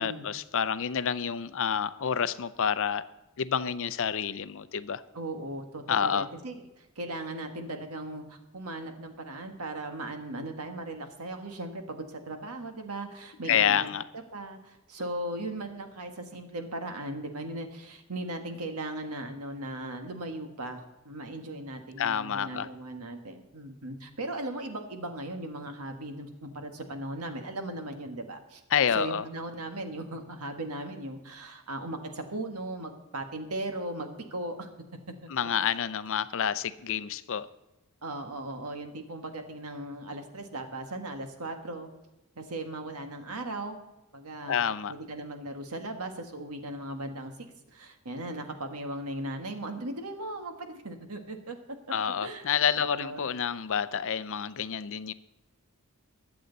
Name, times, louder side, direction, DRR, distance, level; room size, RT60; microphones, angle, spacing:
voice 1, 0.0-3.0 3.4-5.0 5.9-6.3 13.5-14.0 22.0-22.7 28.7-29.2 35.3-37.5 44.5-44.9 51.9-55.1, left 8 dB, 60° left, 14 dB, 0.6 m, -28 dB
voice 2, 5.1-13.9 14.3-28.6 28.9-34.7 35.2-35.7 38.0-41.9 42.3-43.8 44.1-44.5 44.9-47.3 47.7-51.6 52.2-52.4 52.7-53.2, right 1 dB, 80° right, 5 dB, 1.7 m, -38 dB
21.5 x 7.9 x 4.0 m, 1.0 s
head